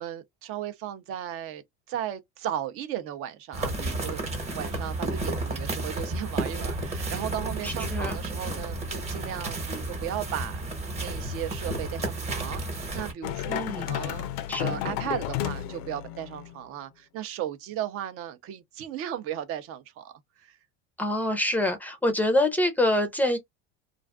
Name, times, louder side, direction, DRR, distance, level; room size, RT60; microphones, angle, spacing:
voice 1, 0.0-10.6 11.0-14.3 14.6-20.6, right 11 dB, 50° right, 0.6 m, -36 dB
sound 1, 3.5-13.1, right 2 dB, 20° right, 1.0 m, -32 dB
voice 2, 7.6-8.2 13.5-13.9 14.5-14.9 21.0-23.4, left 1 dB, 5° left, 0.5 m, -26 dB
sound 2, 13.2-16.6, left 12 dB, 85° left, 0.5 m, -32 dB
2.5 x 2.3 x 2.3 m
cardioid pair, 135°, 30 cm